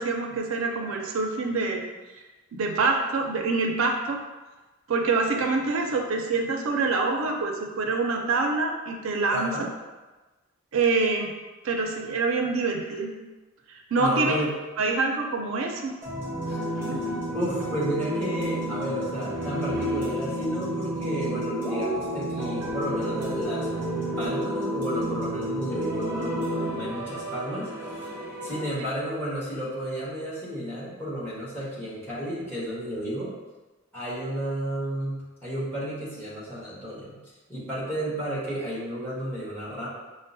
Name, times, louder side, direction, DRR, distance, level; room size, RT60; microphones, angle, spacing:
voice 1, 0.0-1.8 2.5-4.2 4.9-9.7 10.7-11.3 11.6-13.1 13.7-14.4 14.8-15.9 16.8-17.0, right 3 dB, 75° right, 2 dB, 0.4 m, -26 dB
voice 2, 9.3-9.7 13.9-14.5 16.5-16.6 17.3-23.7 24.2-27.7 28.4-33.3 33.9-37.2 37.5-39.9, equal, 10° left, -8 dB, 1.1 m, -32 dB
sound 1, 16.0-28.7, right 1 dB, 10° right, 0.7 m, -30 dB
5.4 x 2.0 x 2.5 m, 1.2 s
head